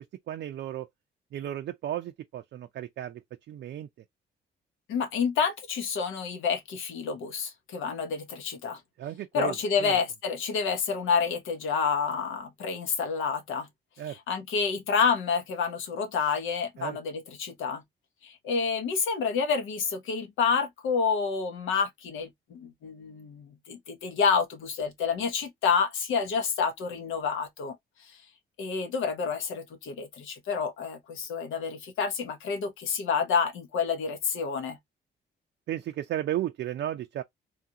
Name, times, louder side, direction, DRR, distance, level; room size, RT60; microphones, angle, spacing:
voice 1, 0.3-0.9 1.3-3.2 3.5-3.9 9.0-9.6 9.8-9.9 14.0-14.2 16.8-17.0 35.7-37.2, right 12 dB, 60° right, 0.4 m, -34 dB
voice 2, 4.9-8.8 9.3-13.7 14.1-17.8 18.2-28.1 28.6-34.8, left 6 dB, 85° left, 0.9 m, -29 dB
3.2 x 2.4 x 2.7 m
cardioid pair, 90°, 20 cm